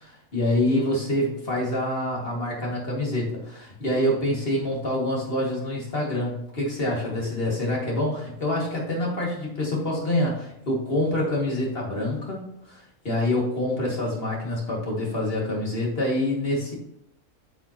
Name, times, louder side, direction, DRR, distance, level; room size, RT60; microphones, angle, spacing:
voice 1, 0.3-16.8, left 1 dB, 40° left, -2 dB, 2.4 m, -26 dB
9.5 x 5.9 x 2.9 m, 0.77 s
omnidirectional pair, 1.6 m